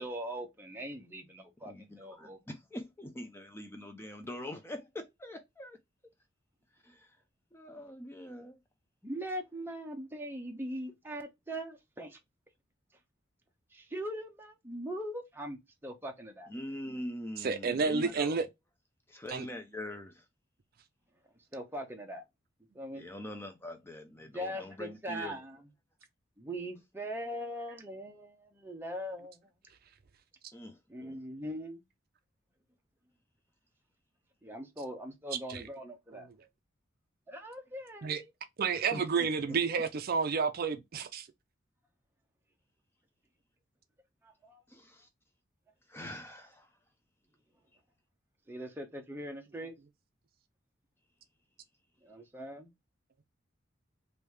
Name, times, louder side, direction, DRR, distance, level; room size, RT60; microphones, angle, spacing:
voice 1, 0.0-2.4 9.0-12.2 13.7-16.5 18.0-18.1 21.5-22.2 22.7-23.0 24.3-25.6 26.4-29.4 30.9-31.8 34.4-36.3 37.3-38.3 44.2-44.6 48.5-49.8 52.0-52.7, equal, 10° right, 0.8 m, -41 dB
voice 2, 1.7-5.8 6.8-7.2 7.5-8.6 16.5-18.4 19.1-20.3 23.0-25.4 30.5-31.2 38.7-39.6 44.7-45.1 45.9-46.7, left 1 dB, 10° left, 0.4 m, -43 dB
voice 3, 17.4-18.4 19.3-19.4 35.5-35.6 36.1-36.2 38.0-38.2 38.6-41.3, right 5 dB, 50° right, 0.4 m, -30 dB
3.2 x 2.7 x 3.2 m
head